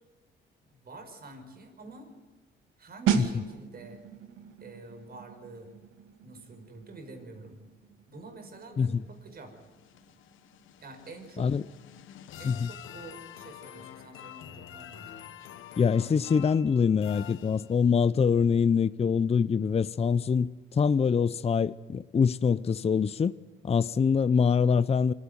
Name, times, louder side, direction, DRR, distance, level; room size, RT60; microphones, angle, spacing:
voice 1, 0.7-2.1 2.8-4.0 4.6-5.7 6.2-7.6 8.1-9.6 10.8-11.5 12.4-15.5, right 2 dB, 50° right, 5.6 m, -47 dB
sound 1, 3.1-13.6 13.8-14.1, right 8 dB, 90° right, 2.3 m, -37 dB
sound 2, 9.1-18.0, left 11 dB, 85° left, 1.4 m, -47 dB
voice 2, 15.8-23.4 23.6-25.1, left 6 dB, 30° left, 0.6 m, -24 dB
25.0 x 15.5 x 9.6 m
cardioid pair, 90°, 20 cm